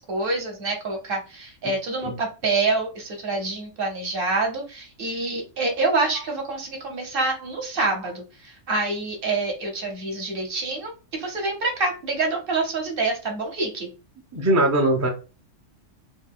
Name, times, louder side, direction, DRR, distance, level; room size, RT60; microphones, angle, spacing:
voice 1, 0.0-13.9, right 3 dB, 50° right, 2 dB, 0.9 m, -26 dB
voice 2, 14.3-15.1, right 1 dB, 25° right, 0 dB, 0.3 m, -20 dB
2.9 x 2.1 x 3.5 m, 0.32 s
omnidirectional pair, 1.3 m